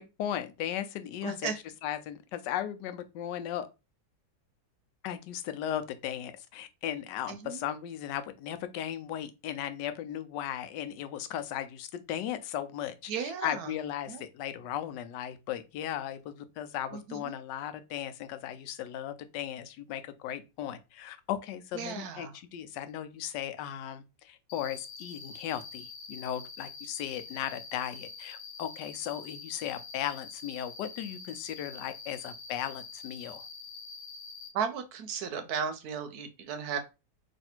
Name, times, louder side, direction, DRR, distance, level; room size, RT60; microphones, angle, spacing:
voice 1, 0.0-1.5 1.8-3.7 5.0-33.5, left 11 dB, 85° left, 1.2 m, -36 dB
voice 2, 1.2-1.6 7.3-7.6 13.1-13.7 14.1-14.2 16.9-17.3 21.7-22.3 34.5-36.8, right 7 dB, 70° right, 1.0 m, -35 dB
Cricket, 24.5-34.5, left 5 dB, 65° left, 1.2 m, -45 dB
3.2 x 2.6 x 4.3 m
omnidirectional pair, 1.8 m